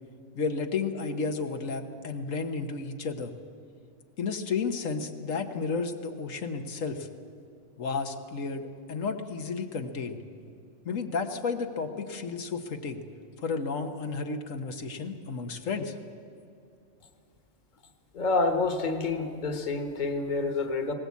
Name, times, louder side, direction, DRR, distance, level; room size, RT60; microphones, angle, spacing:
voice 1, 0.3-3.3 4.2-7.1 7.8-10.2 10.8-13.0 13.4-16.0, left 4 dB, 85° left, 5 dB, 1.5 m, -32 dB
voice 2, 18.1-20.9, left 3 dB, 40° left, 6 dB, 1.4 m, -28 dB
19.5 x 18.5 x 8.4 m, 2.4 s
omnidirectional pair, 1.3 m